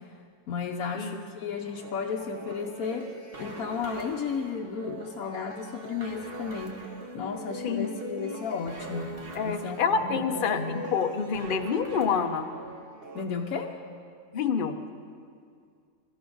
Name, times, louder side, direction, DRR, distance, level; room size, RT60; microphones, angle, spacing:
voice 1, 0.5-3.1 3.4-6.8 7.1-9.1 9.4-10.8 13.1-13.8, left 6 dB, 75° left, 1 dB, 1.2 m, -34 dB
sound 1, 1.7-13.3, right 2 dB, 40° right, 1.6 m, -41 dB
voice 2, 9.3-12.5 14.3-14.8, left 6 dB, 45° left, 7 dB, 0.8 m, -27 dB
23.0 x 13.5 x 3.9 m, 2.2 s
omnidirectional pair, 1.5 m